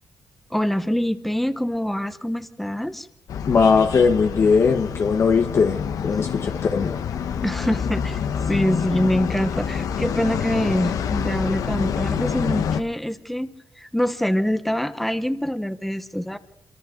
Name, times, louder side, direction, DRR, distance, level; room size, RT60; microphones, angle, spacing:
voice 1, 0.5-3.1 7.3-8.2 8.5-13.5 13.8-16.4, equal, ahead, 11 dB, 1.1 m, -25 dB
sound 1, 3.3-12.8, left 7 dB, 70° left, 1.2 m, -27 dB
voice 2, 3.5-7.0, left 5 dB, 45° left, 5 dB, 1.2 m, -19 dB
27.0 x 24.5 x 4.0 m, 0.73 s
cardioid pair, 135°, 6 cm